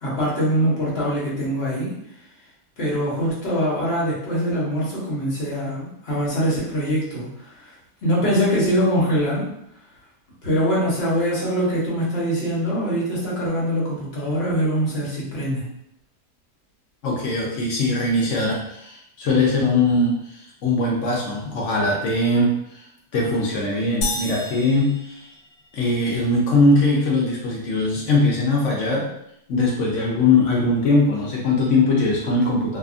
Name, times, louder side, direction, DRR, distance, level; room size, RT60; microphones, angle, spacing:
voice 1, 0.0-1.9 2.8-7.3 8.0-9.4 10.4-15.6, equal, 45° left, -6 dB, 1.1 m, -23 dB
voice 2, 17.0-22.8 23.1-25.3 25.7-29.1 29.5-32.8, left 2 dB, 65° left, -3 dB, 0.8 m, -21 dB
sound 1, 24.0-25.9, left 2 dB, 85° left, 1.1 m, -31 dB
2.7 x 2.3 x 2.4 m, 0.77 s
omnidirectional pair, 1.6 m